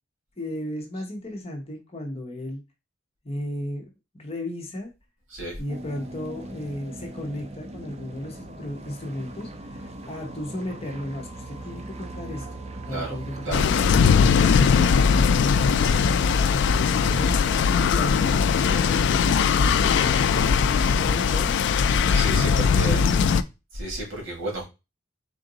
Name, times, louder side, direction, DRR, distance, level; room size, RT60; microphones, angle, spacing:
voice 1, 0.4-2.6 3.2-4.9 5.6-12.5 12.9-21.6 22.3-23.3, left 1 dB, 30° left, 0.9 m, -35 dB
sound 1, 5.7-14.2, right 2 dB, 35° right, 0.5 m, -39 dB
sound 2, 13.5-23.4, left 6 dB, 60° left, 0.3 m, -20 dB
voice 2, 22.1-23.0 23.7-24.6, right 2 dB, 70° right, 2.3 m, -32 dB
3.8 x 2.5 x 3.8 m
head